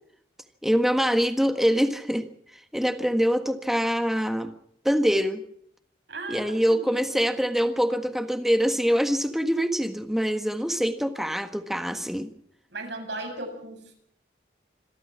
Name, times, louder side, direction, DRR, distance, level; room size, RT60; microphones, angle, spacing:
voice 1, 0.6-2.2 2.7-4.5 4.8-5.4 6.3-12.3, equal, ahead, 7 dB, 1.5 m, -24 dB
voice 2, 6.1-7.0 12.7-13.9, right 2 dB, 75° right, 2 dB, 7.6 m, -36 dB
26.5 x 13.0 x 7.5 m, 0.67 s
head